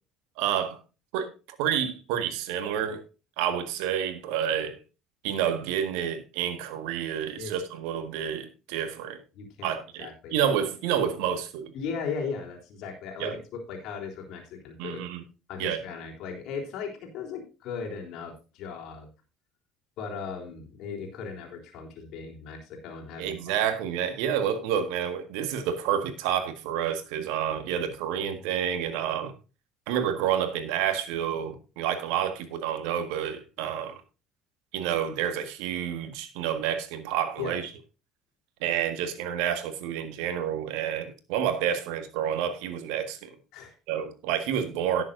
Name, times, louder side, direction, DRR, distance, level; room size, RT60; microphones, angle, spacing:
voice 1, 0.4-0.8 1.1-1.3 1.6-3.0 3.4-4.8 5.2-9.2 9.6-11.7 13.2-13.3 14.8-15.2 15.6-15.8 23.2-29.3 29.9-34.0 34.7-37.7 38.6-43.3 43.9-45.0, right 9 dB, 65° right, 1.6 m, -29 dB
voice 2, 9.3-9.7 10.0-10.3 11.7-15.0 15.5-19.1 20.0-23.7 37.4-37.6 43.5-43.7, left 5 dB, 60° left, 3.7 m, -37 dB
17.5 x 7.2 x 2.6 m
figure-of-eight pair, 60°, 0 cm